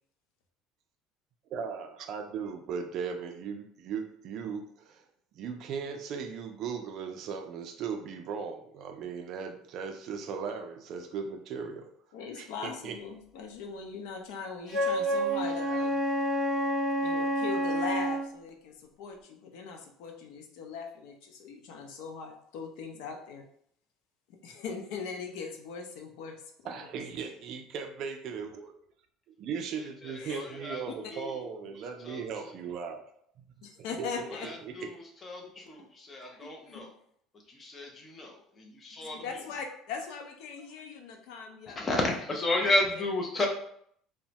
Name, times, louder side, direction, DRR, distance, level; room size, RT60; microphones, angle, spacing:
voice 1, 1.5-5.0 5.3-11.9 12.3-13.0 26.6-28.8 29.4-33.1 33.5-33.7 34.0-34.9, right 6 dB, 45° right, 6 dB, 0.3 m, -38 dB
voice 2, 12.1-16.0 17.0-23.4 24.4-26.3 30.2-30.5 30.9-31.0 33.6-34.5 36.4-36.8 39.1-41.8 43.4-43.5, left 5 dB, 75° left, 3 dB, 0.5 m, -40 dB
Wind instrument woodwind instrument, 14.7-18.2, right 1 dB, 25° right, 1.0 m, -28 dB
voice 3, 30.3-30.8 31.1-31.3 32.0-32.2 34.4-34.9 35.2-36.9 37.6-39.2 41.8-43.5, left 2 dB, 20° left, 1 dB, 0.5 m, -32 dB
3.0 x 2.0 x 2.8 m, 0.66 s
cardioid pair, 165°, 0 cm